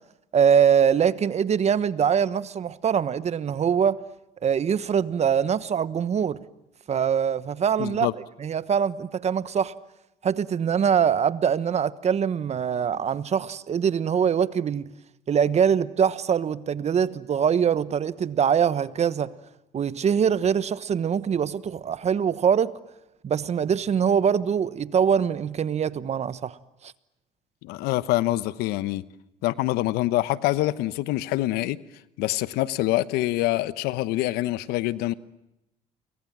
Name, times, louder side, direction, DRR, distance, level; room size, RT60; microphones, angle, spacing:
voice 1, 0.3-4.0 4.4-6.4 6.9-8.1 8.4-9.7 10.2-14.9 15.3-19.3 19.7-22.7 23.2-26.6 26.8-26.9, right 7 dB, 45° right, 1.2 m, -23 dB
voice 2, 7.8-8.1 27.6-29.0 29.4-31.8 32.2-35.1, left 16 dB, 75° left, 1.0 m, -25 dB
30.0 x 23.5 x 7.6 m
supercardioid pair, 80°, 16 cm